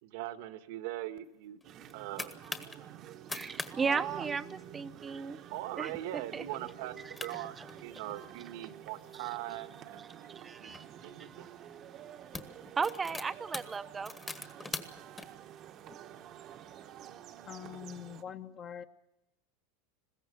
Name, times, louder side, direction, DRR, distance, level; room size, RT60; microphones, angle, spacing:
voice 1, 0.0-1.6 1.9-2.3 5.5-7.5 7.8-10.0 10.6-11.5, right 14 dB, 65° right, 10 dB, 1.5 m, -41 dB
sound 1, 1.6-2.8 3.2-3.7 4.0-4.1 4.4-4.8 5.3-5.6 6.0-6.1 6.9-7.0 7.2-8.3 8.9-10.8 11.6-11.8 12.1-15.2, left 3 dB, 10° left, 1.4 m, -43 dB
sound 2, 1.6-18.2, right 10 dB, 40° right, 1.1 m, -48 dB
voice 2, 3.3-5.4 5.8-6.4 7.0-7.4 9.1-9.3 10.3-10.9 11.2-11.8 12.3-14.1, right 5 dB, 15° right, 12 dB, 0.8 m, -36 dB
voice 3, 16.5-17.0 17.5-18.8, left 8 dB, 30° left, 7 dB, 1.3 m, -45 dB
21.0 x 16.0 x 9.6 m, 0.91 s
supercardioid pair, 140°, 0 cm